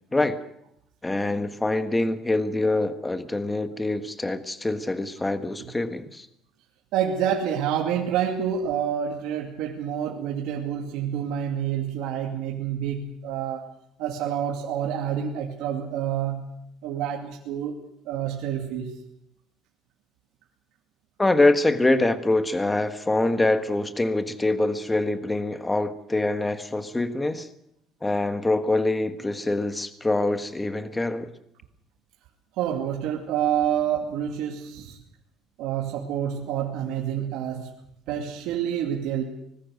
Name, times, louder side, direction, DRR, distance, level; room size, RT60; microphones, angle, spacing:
voice 1, 1.0-6.3 21.2-27.5 28.0-31.3, left 2 dB, 10° left, 9 dB, 1.4 m, -24 dB
voice 2, 6.9-13.7 14.0-16.5 16.8-17.8 18.0-19.0 32.5-35.0 35.6-37.7 38.1-39.2, right 9 dB, 75° right, 0 dB, 2.5 m, -28 dB
24.5 x 20.0 x 6.5 m, 0.75 s
cardioid pair, 155°, 0 cm